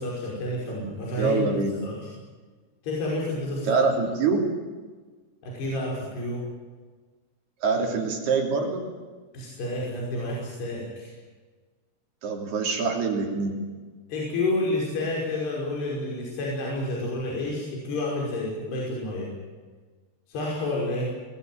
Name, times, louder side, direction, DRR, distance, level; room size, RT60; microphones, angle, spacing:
voice 1, 0.0-1.4 1.8-2.1 2.8-3.8 5.4-6.4 9.3-11.1 14.1-19.3 20.3-21.1, left 2 dB, 65° left, -3 dB, 7.4 m, -29 dB
voice 2, 1.2-1.8 3.7-4.5 7.6-8.9 12.2-13.6, right 4 dB, 60° right, 1 dB, 5.1 m, -25 dB
22.5 x 20.5 x 9.2 m, 1.4 s
omnidirectional pair, 5.2 m